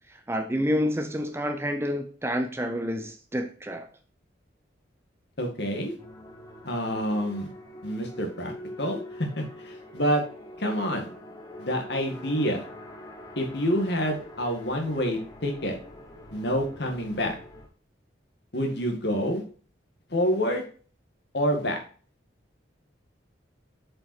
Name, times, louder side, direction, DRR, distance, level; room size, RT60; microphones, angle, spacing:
voice 1, 0.3-3.9, equal, 15° right, 7 dB, 0.6 m, -28 dB
voice 2, 5.4-6.0 6.6-7.5 7.8-8.5 8.8-10.2 10.6-11.1 11.6-12.6 13.4-15.8 16.3-17.4 18.5-19.4 20.1-20.6 21.3-21.8, equal, 60° left, 2 dB, 1.9 m, -27 dB
sound 1, 6.0-17.7, left 1 dB, 20° left, 1.2 m, -44 dB
7.3 x 5.3 x 4.3 m, 0.41 s
head